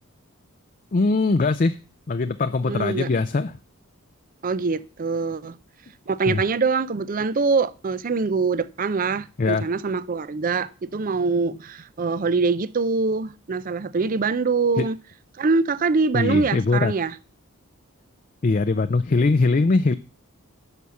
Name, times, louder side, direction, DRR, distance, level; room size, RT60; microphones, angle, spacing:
voice 1, 0.9-1.8 2.1-3.6 6.3-6.4 9.4-9.6 14.8-14.9 16.1-16.9 18.4-19.9, left 3 dB, 40° left, 0.5 m, -21 dB
voice 2, 2.6-3.1 4.4-5.5 6.1-15.0 15.4-17.2, right 4 dB, 40° right, 0.5 m, -24 dB
11.0 x 5.7 x 6.9 m
head